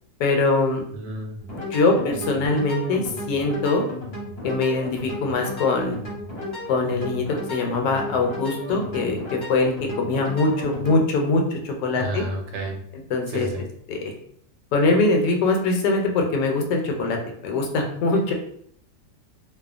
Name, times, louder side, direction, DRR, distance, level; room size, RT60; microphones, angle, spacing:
voice 1, 0.2-0.8 1.7-3.8 4.4-6.0 6.7-12.2 13.1-13.5 13.9-14.1 14.7-17.2 17.4-18.3, left 3 dB, 80° left, 2 dB, 1.2 m, -22 dB
voice 2, 0.9-1.4 11.9-12.8 13.3-13.6, right 1 dB, 75° right, 1 dB, 1.2 m, -31 dB
sound 1, 1.4-11.0, left 1 dB, 45° left, 0.9 m, -34 dB
2.7 x 2.3 x 2.4 m, 0.65 s
omnidirectional pair, 1.9 m